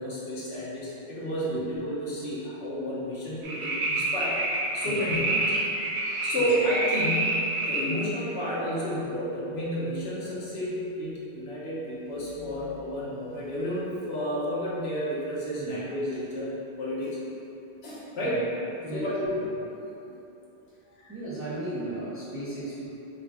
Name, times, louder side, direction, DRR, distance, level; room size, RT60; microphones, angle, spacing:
voice 1, 0.0-4.4 4.7-5.6 6.1-17.2 17.8-18.4 18.9-19.5 20.1-20.2 21.0-21.1, equal, 70° left, -7 dB, 1.0 m, -31 dB
sound 1, 3.4-7.9 8.4-8.5, right 2 dB, 75° right, 0.9 m, -28 dB
voice 2, 21.1-22.9, right 1 dB, 15° right, -11 dB, 0.6 m, -35 dB
3.7 x 2.4 x 3.4 m, 2.8 s
omnidirectional pair, 1.1 m